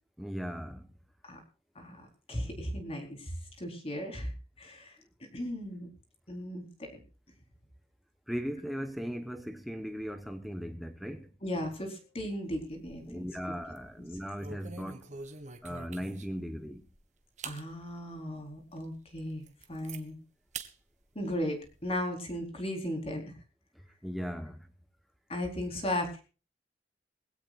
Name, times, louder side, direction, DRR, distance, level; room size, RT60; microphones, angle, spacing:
voice 1, 0.2-0.9 8.3-11.3 13.1-15.0 15.6-16.8 24.0-24.7, equal, ahead, 1.1 m, -38 dB
voice 2, 1.7-4.3 4.6-5.0 5.3-5.9 6.3-7.0 11.4-13.5 14.0-14.1 17.4-20.2 21.1-23.2 25.3-26.2, equal, 35° left, 4.3 m, -36 dB
sound 1, 12.5-13.3 13.6-13.8 14.4-16.5 16.9-17.0 17.4-17.6 18.1-18.2 18.8-18.9 19.2-20.0 20.5-20.7 21.1-22.0, right 5 dB, 45° right, 1.7 m, -45 dB
21.5 x 16.5 x 2.5 m
head